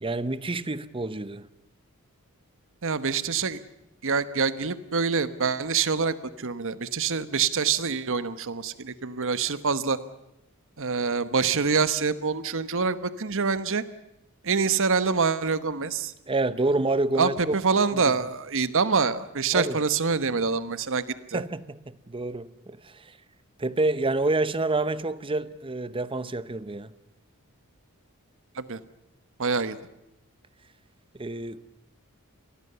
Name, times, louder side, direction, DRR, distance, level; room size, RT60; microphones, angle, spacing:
voice 1, 0.0-1.5 16.3-17.6 18.0-18.1 19.5-19.8 21.3-23.2 23.6-26.9 31.1-31.6, right 2 dB, 25° right, 0.8 m, -28 dB
voice 2, 2.8-3.6 4.0-10.0 10.8-13.8 14.4-16.1 17.2-21.4 28.5-28.8 29.4-29.8, right 5 dB, 60° right, 1.2 m, -26 dB
27.5 x 20.0 x 6.9 m
head